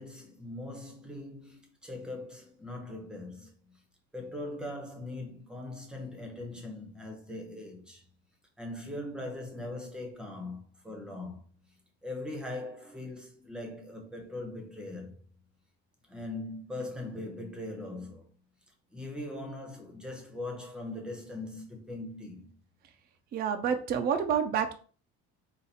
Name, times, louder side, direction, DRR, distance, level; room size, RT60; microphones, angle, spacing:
voice 1, 0.0-3.5 4.1-8.0 8.6-11.4 12.0-15.2 16.1-18.3 18.9-22.6, left 2 dB, 5° right, 0.8 m, -40 dB
voice 2, 23.3-24.7, right 7 dB, 30° right, 0.4 m, -28 dB
4.0 x 2.5 x 4.2 m
cardioid pair, 150°, 31 cm